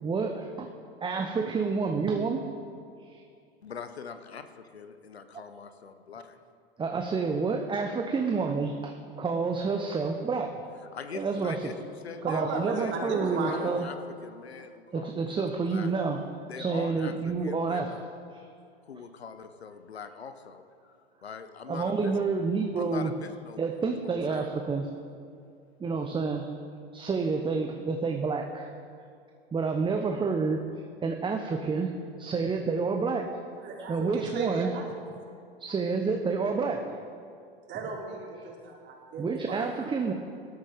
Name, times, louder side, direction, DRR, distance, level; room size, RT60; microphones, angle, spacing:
voice 1, 0.0-0.7 1.0-2.4 3.0-3.2 6.8-10.5 11.1-11.8 12.2-13.8 14.6-16.2 16.6-17.9 18.3-18.5 21.7-23.1 23.6-24.9 25.8-26.5 26.9-28.7 29.5-30.6 31.0-31.9 32.2-33.3 33.9-34.7 35.6-37.0 39.2-40.1, right 4 dB, 15° right, 4 dB, 0.9 m, -29 dB
voice 2, 3.6-6.4 10.9-12.4 12.8-13.1 13.4-15.9 16.5-17.1 17.4-18.0 18.9-20.9 21.2-22.1 22.8-23.6 24.0-24.5, left 6 dB, 85° left, 9 dB, 1.0 m, -43 dB
voice 3, 12.3-13.7 33.6-34.8 37.7-39.6, right 4 dB, 35° right, -1 dB, 3.2 m, -35 dB
18.0 x 12.5 x 3.6 m, 2.4 s
hypercardioid pair, 90°, 31 cm